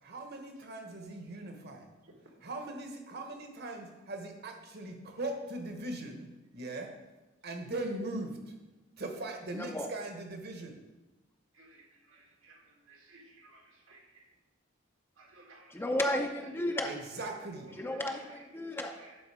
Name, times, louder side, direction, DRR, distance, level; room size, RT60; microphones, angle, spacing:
voice 1, 0.0-1.9 2.4-6.3 6.5-6.9 7.4-8.3 9.0-10.8 16.8-17.7, right 2 dB, 50° right, 3 dB, 1.2 m, -40 dB
voice 2, 9.5-9.9 15.7-16.9 17.8-19.0, left 1 dB, 10° left, 4 dB, 0.5 m, -33 dB
voice 3, 11.5-14.3 15.2-15.7 17.5-17.7 18.3-18.4 19.0-19.2, right 2 dB, 75° right, 1 dB, 1.6 m, -58 dB
11.0 x 4.0 x 4.9 m, 1.1 s
head